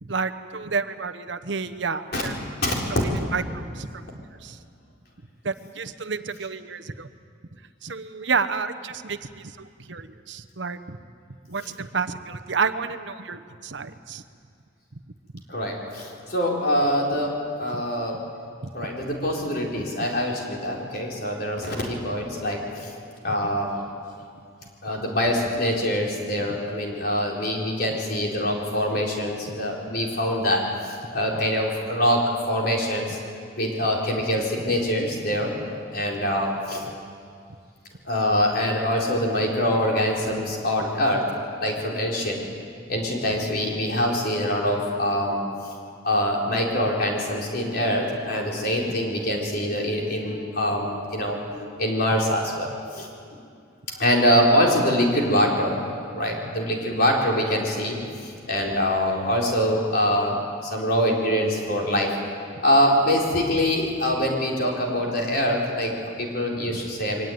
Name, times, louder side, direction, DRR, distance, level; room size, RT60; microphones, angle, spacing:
voice 1, 0.0-2.3 2.9-3.9 4.4-4.6 5.4-7.1 7.8-11.0 11.5-14.2 18.6-18.7 29.5-29.6 31.3-31.5 36.2-36.3 66.7-66.8, right 5 dB, 65° right, 9 dB, 0.9 m, -30 dB
voice 2, 15.5-18.1 18.7-22.9 23.2-23.7 24.8-32.2 32.5-33.2 33.6-35.5 35.9-36.8 38.1-41.2 41.6-42.4 42.9-45.5 46.0-53.1 53.9-55.8 56.1-58.0 58.5-62.1 62.6-67.3, equal, 55° left, -1 dB, 4.3 m, -24 dB
23.5 x 18.5 x 9.4 m, 2.3 s
head